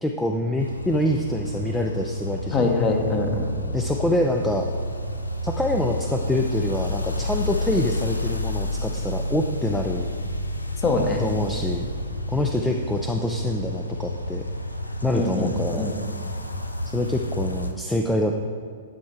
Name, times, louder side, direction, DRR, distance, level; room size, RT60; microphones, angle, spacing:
voice 1, 0.0-2.7 3.7-4.7 5.4-10.1 11.2-11.9 12.3-14.4 15.0-15.9 16.9-18.3, left 1 dB, 5° left, 2 dB, 0.4 m, -25 dB
sound 1, 0.6-17.7, left 1 dB, 90° left, 0.6 m, -30 dB
voice 2, 2.5-3.5 10.8-11.2 15.1-15.9, left 3 dB, 25° left, 2 dB, 1.1 m, -23 dB
10.5 x 4.3 x 4.6 m, 2.3 s
figure-of-eight pair, 110°, 0 cm